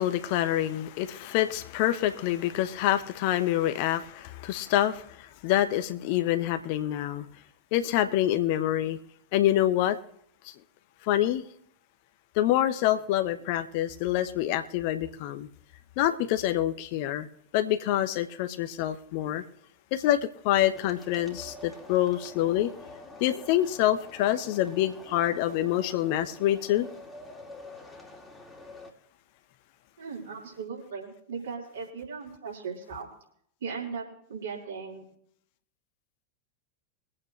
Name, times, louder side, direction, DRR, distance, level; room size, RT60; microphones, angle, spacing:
voice 1, 0.0-7.3 7.7-9.0 9.3-10.0 10.4-10.5 11.0-11.5 12.3-15.5 16.0-17.3 17.5-19.4 19.9-22.7 23.2-26.9, left 13 dB, 45° left, 1.0 m, -26 dB
sound 1, 20.7-28.9, left 2 dB, 5° left, 2.4 m, -47 dB
voice 2, 30.0-33.1 33.6-35.1, right 5 dB, 65° right, 4.4 m, -38 dB
23.5 x 8.8 x 3.2 m
figure-of-eight pair, 90°, 0 cm